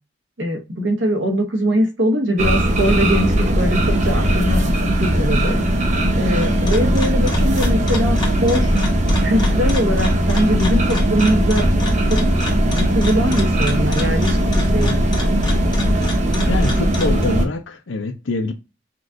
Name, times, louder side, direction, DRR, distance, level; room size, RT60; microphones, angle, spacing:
voice 1, 0.4-4.6 5.0-5.6 6.2-8.8 9.2-11.7 12.1-12.2 12.7-15.1, equal, 80° right, 1.1 m, -22 dB
sound 1, 2.4-17.4, right 1 dB, 40° right, 0.7 m, -18 dB
sound 2, 6.4-17.2, left 3 dB, 25° left, 1.1 m, -32 dB
voice 2, 16.5-18.5, left 3 dB, 85° left, 0.6 m, -24 dB
5.9 x 2.5 x 2.5 m
head